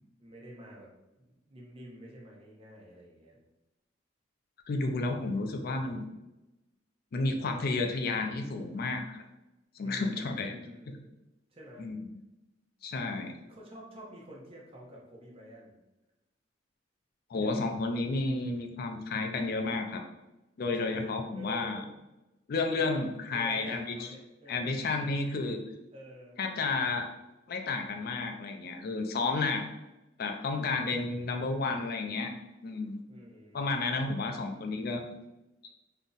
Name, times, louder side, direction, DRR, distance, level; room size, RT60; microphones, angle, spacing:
voice 1, 0.2-0.9 1.3-3.4 9.8-11.1 11.5-11.9 13.1-15.8 17.4-17.7 20.8-21.1 21.3-21.9 22.7-24.9 25.9-26.4 33.1-34.1, right 1 dB, 30° right, -3 dB, 0.6 m, -49 dB
voice 2, 4.7-6.1 7.1-9.2 9.8-10.5 10.9-11.0 11.8-12.0 12.8-13.4 17.3-20.0 20.6-21.8 22.5-24.1 24.5-25.6 26.4-27.1 27.5-29.7 30.2-32.3 32.6-33.0 33.5-35.0, left 3 dB, 50° left, 5 dB, 0.4 m, -31 dB
2.6 x 2.1 x 3.7 m, 0.99 s
head